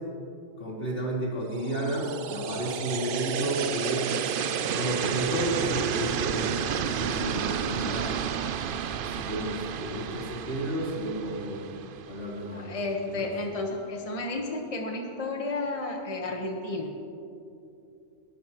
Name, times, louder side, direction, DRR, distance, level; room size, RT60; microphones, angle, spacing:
voice 1, 0.6-4.1 4.7-8.3 8.9-11.6 12.1-12.8 13.0-13.3, right 1 dB, 75° left, -6 dB, 4.2 m, -32 dB
sound 1, 1.6-12.6, right 8 dB, 60° right, 0.7 m, -31 dB
voice 2, 12.5-16.9, left 2 dB, 30° left, 1 dB, 1.3 m, -32 dB
29.0 x 12.5 x 3.0 m, 2.7 s
omnidirectional pair, 1.2 m